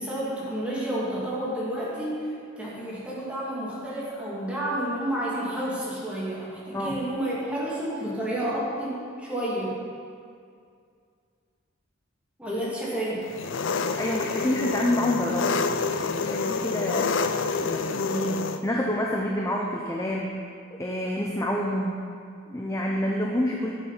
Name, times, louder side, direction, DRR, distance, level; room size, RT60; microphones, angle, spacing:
voice 1, 0.0-2.3 2.6-9.7 12.4-13.3, right 1 dB, 5° right, -8 dB, 2.7 m, -30 dB
voice 2, 6.7-7.1 14.0-15.6 15.9-17.1 17.6-20.4 20.8-22.0 22.5-23.7, left 1 dB, 15° left, -1 dB, 0.7 m, -28 dB
Engine, 13.3-18.6, left 4 dB, 70° left, 0.5 m, -27 dB
11.5 x 7.3 x 5.8 m, 2.3 s
head